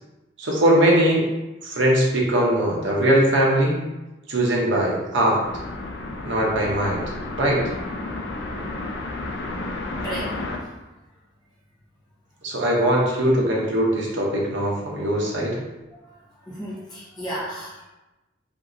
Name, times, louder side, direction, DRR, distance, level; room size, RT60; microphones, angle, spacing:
voice 1, 0.4-1.3 1.6-3.8 4.3-5.4 6.2-7.0 7.4-7.6 12.4-15.6, right 1 dB, 80° right, -3 dB, 0.7 m, -20 dB
sound 1, 5.4-10.6, left 2 dB, 65° left, 0.4 m, -32 dB
voice 2, 16.4-17.8, right 1 dB, 25° left, -8 dB, 1.0 m, -33 dB
2.9 x 2.6 x 2.6 m, 1.0 s
head